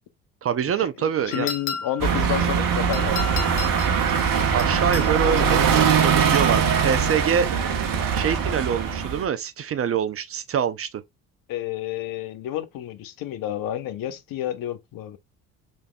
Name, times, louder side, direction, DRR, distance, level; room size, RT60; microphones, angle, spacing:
voice 1, 0.4-1.5 4.5-7.5 8.1-11.0, right 8 dB, 35° right, 0.6 m, -25 dB
voice 2, 1.0-3.2 11.5-15.2, left 12 dB, 50° left, 0.8 m, -30 dB
sound 1, 1.3-2.1 2.9-4.0 4.6-5.1 6.2-7.1, left 7 dB, 80° left, 0.9 m, -34 dB
sound 2, 2.0-9.3, right 6 dB, 50° right, 1.1 m, -22 dB
5.2 x 3.4 x 2.2 m
hypercardioid pair, 55°, 42 cm